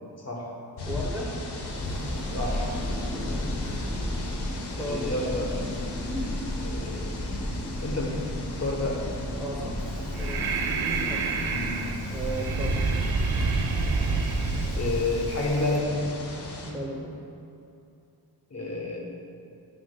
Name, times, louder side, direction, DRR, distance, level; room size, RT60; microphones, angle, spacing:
sound 1, 0.8-16.7, left 2 dB, 80° left, 0.9 m, -37 dB
voice 1, 0.9-1.3 3.1-3.9 4.8-5.4 9.4-11.3 12.1-12.8 16.6-17.2, right 1 dB, 5° right, -3 dB, 0.7 m, -36 dB
Thunder, 1.3-12.4, left 1 dB, 15° left, 1.0 m, -33 dB
voice 2, 2.3-2.7 3.6-3.8 4.8-5.6 6.5-7.5 7.8-8.2 8.6-9.0 11.5-11.8 14.1-15.9 18.5-19.0, left 2 dB, 40° left, -1 dB, 1.0 m, -30 dB
Breathing, 9.8-15.8, right 4 dB, 65° right, 0.6 m, -28 dB
9.9 x 6.2 x 2.2 m, 2.7 s
wide cardioid pair, 145°, 39 cm